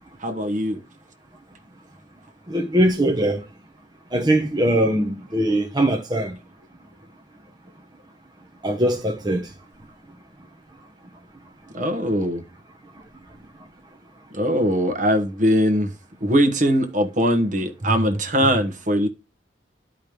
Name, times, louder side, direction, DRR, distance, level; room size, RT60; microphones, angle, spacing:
voice 1, 0.2-0.8 11.7-12.4 14.3-15.9 16.2-19.1, equal, 45° right, 1.2 m, -21 dB
voice 2, 2.5-3.4 4.1-6.4 8.6-9.5, right 1 dB, 25° right, 0.9 m, -21 dB
12.0 x 5.1 x 3.1 m
head